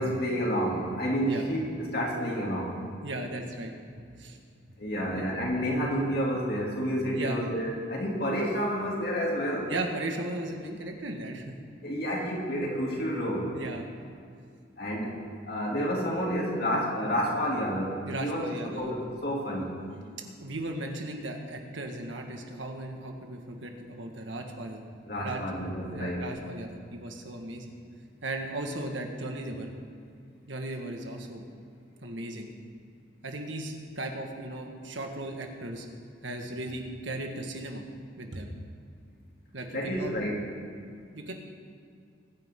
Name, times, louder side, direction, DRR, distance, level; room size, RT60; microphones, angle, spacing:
voice 1, 0.0-2.8 4.8-9.7 11.8-13.5 14.8-15.2 15.5-19.7 25.1-26.3 39.7-40.4, equal, 55° left, -3 dB, 2.9 m, -30 dB
voice 2, 3.0-4.4 5.0-5.2 7.1-7.4 9.7-11.5 12.6-12.8 13.5-13.8 18.0-18.9 19.9-24.8 25.2-25.4 25.8-27.7 28.2-29.7 30.5-31.4 32.0-32.5 33.2-35.9 36.2-37.8 38.2-38.5 39.5-40.1 41.1-41.3, right 1 dB, 85° right, 3 dB, 1.7 m, -37 dB
22.5 x 9.8 x 3.8 m, 2.3 s
head